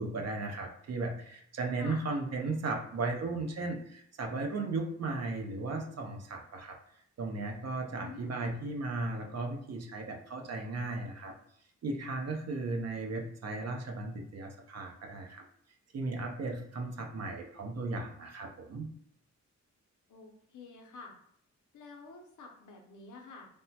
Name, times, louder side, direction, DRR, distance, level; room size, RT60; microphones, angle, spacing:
voice 1, 0.0-6.8 7.2-11.4 11.8-15.4 15.9-18.9, right 3 dB, 60° right, 2 dB, 0.6 m, -36 dB
voice 2, 8.0-8.6 20.1-21.1 21.7-23.5, left 4 dB, 85° left, 1 dB, 0.7 m, -49 dB
3.4 x 2.1 x 2.7 m, 0.67 s
wide cardioid pair, 120°, 29 cm